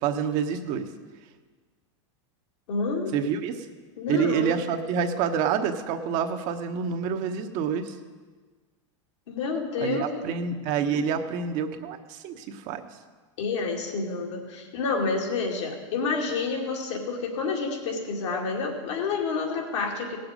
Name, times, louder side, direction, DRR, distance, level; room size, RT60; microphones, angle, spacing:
voice 1, 0.0-0.9 3.1-3.5 4.1-7.9 9.8-12.8, right 7 dB, 55° right, 6 dB, 1.1 m, -27 dB
voice 2, 2.7-3.2 4.0-4.5 9.3-10.2 13.4-20.2, left 4 dB, 75° left, 1 dB, 2.3 m, -29 dB
17.5 x 7.0 x 5.1 m, 1.4 s
hypercardioid pair, 105°, 16 cm